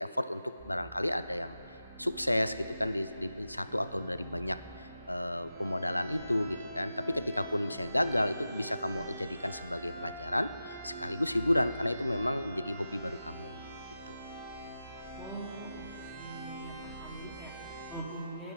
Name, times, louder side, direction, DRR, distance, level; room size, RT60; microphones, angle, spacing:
voice 1, 0.0-1.6 2.0-13.6 14.1-14.2, left 1 dB, 85° left, 12 dB, 0.3 m, -32 dB
sound 1, 0.6-18.0, right 2 dB, 35° right, 1.1 m, -46 dB
voice 2, 15.2-15.9 16.1-18.5, right 1 dB, 5° left, -5 dB, 1.2 m, -43 dB
10.5 x 5.6 x 6.4 m, 3.0 s
figure-of-eight pair, 120°, 0 cm